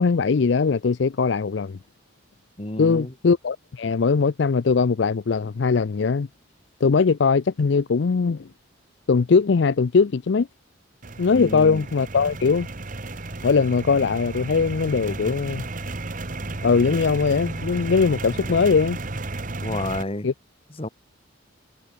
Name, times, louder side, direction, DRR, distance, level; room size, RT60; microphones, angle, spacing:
voice 1, 0.0-1.8 2.8-6.3 6.8-8.5 9.1-10.5 11.2-12.7 13.4-15.7 16.6-19.0 20.2-20.3, left 5 dB, 60° left, 0.4 m, -20 dB
voice 2, 2.6-3.1 11.3-11.8 18.5-18.6 19.6-20.3 20.8-20.9, left 1 dB, 30° left, 1.4 m, -30 dB
sound 1, 11.0-20.0, right 2 dB, 40° right, 1.4 m, -33 dB
head